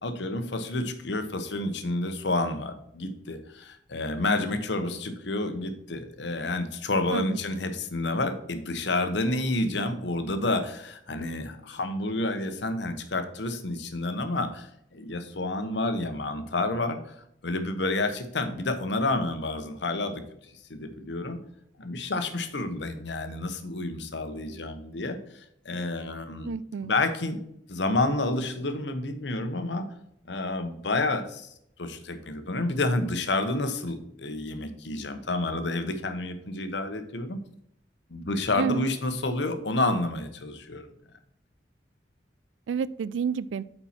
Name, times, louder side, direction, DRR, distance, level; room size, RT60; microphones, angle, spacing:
voice 1, 0.0-17.1 17.4-20.2 20.7-21.4 21.8-26.5 26.8-27.4 27.7-29.9 30.3-37.4 38.1-40.9, left 2 dB, 70° left, 8 dB, 1.0 m, -29 dB
voice 2, 26.4-26.9 38.6-38.8 42.7-43.6, right 6 dB, 80° right, 18 dB, 0.3 m, -29 dB
8.5 x 4.4 x 4.3 m, 0.73 s
head